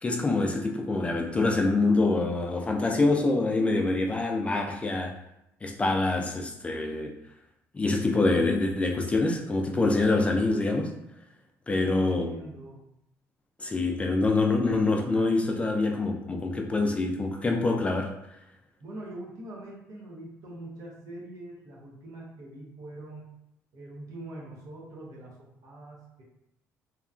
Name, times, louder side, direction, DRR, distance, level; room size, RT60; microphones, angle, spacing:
voice 1, 0.0-5.1 5.6-7.1 7.7-10.9 11.7-12.3 13.6-18.1, left 2 dB, 20° left, 2 dB, 0.3 m, -25 dB
voice 2, 11.7-12.8 18.8-23.3 23.7-26.2, right 1 dB, 65° right, -3 dB, 0.9 m, -43 dB
2.8 x 2.3 x 2.4 m, 0.83 s
cardioid pair, 100°, 6 cm